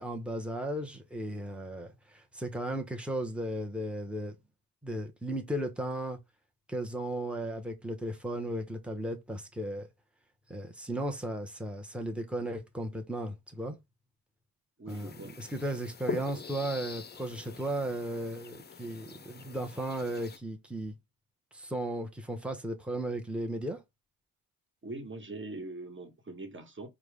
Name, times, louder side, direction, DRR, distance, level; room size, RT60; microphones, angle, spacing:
voice 1, 0.0-4.4 4.8-6.2 6.7-9.9 10.5-13.8 14.9-20.9 21.5-23.8, right 1 dB, 5° right, 1.1 m, -35 dB
voice 2, 14.8-15.3 24.8-26.9, right 2 dB, 30° right, 1.5 m, -42 dB
sound 1, 14.9-20.4, left 6 dB, 25° left, 0.6 m, -44 dB
4.7 x 2.4 x 3.5 m
supercardioid pair, 60°, 41 cm